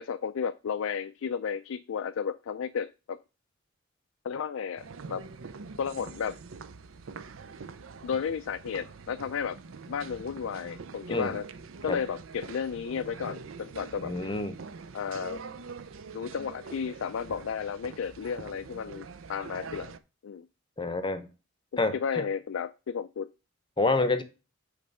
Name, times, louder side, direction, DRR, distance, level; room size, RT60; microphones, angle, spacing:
voice 1, 0.0-3.2 4.2-5.2 5.8-6.4 8.0-9.6 9.9-11.4 11.8-14.1 14.9-15.4 16.1-19.9 20.2-20.5 21.9-23.3, left 6 dB, 75° left, 0.3 m, -33 dB
sound 1, 4.8-20.0, right 4 dB, 75° right, 0.5 m, -44 dB
voice 2, 14.0-14.6 20.8-21.3 21.8-22.3 23.8-24.2, left 3 dB, 20° left, 0.7 m, -28 dB
8.9 x 3.3 x 5.3 m
head